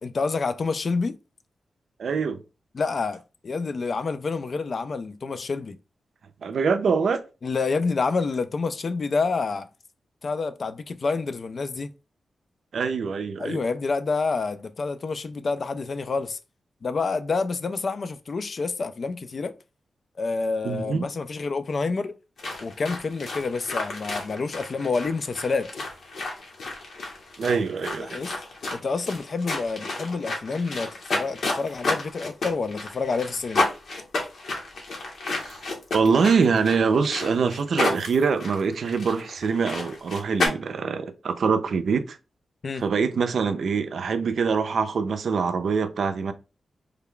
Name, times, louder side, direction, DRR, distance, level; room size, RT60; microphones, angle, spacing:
voice 1, 0.0-1.2 2.7-5.8 7.4-9.7 10.2-11.9 13.4-16.4 16.8-19.5 20.2-22.2 22.6-25.8 28.0-28.3 28.7-33.7 42.6-42.8, left 4 dB, 50° left, 0.3 m, -28 dB
voice 2, 2.0-2.4 6.4-7.2 12.7-13.6 20.6-21.0 27.4-28.2 35.4-35.6 35.9-42.2 42.8-46.3, right 5 dB, 70° right, 0.4 m, -24 dB
sound 1, 22.4-40.5, left 2 dB, 80° left, 1.0 m, -31 dB
3.3 x 2.2 x 3.6 m
wide cardioid pair, 110°, 0 cm